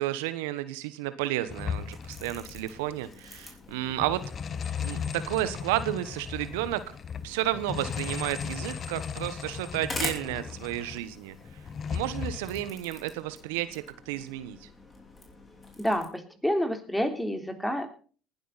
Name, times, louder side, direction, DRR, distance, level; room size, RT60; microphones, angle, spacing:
voice 1, 0.0-4.2 4.8-6.9 7.2-11.6 11.9-14.7, right 14 dB, 75° right, 13 dB, 1.0 m, -32 dB
sound 1, 1.4-16.1, left 2 dB, 25° left, 5.0 m, -45 dB
sound 2, 1.5-3.1 3.4-3.5 3.8-11.0 11.4-12.7, left 7 dB, 40° left, 1.3 m, -36 dB
voice 2, 15.8-17.9, equal, 5° left, 5 dB, 3.4 m, -28 dB
19.0 x 12.0 x 4.1 m, 0.41 s
hypercardioid pair, 70°, 0 cm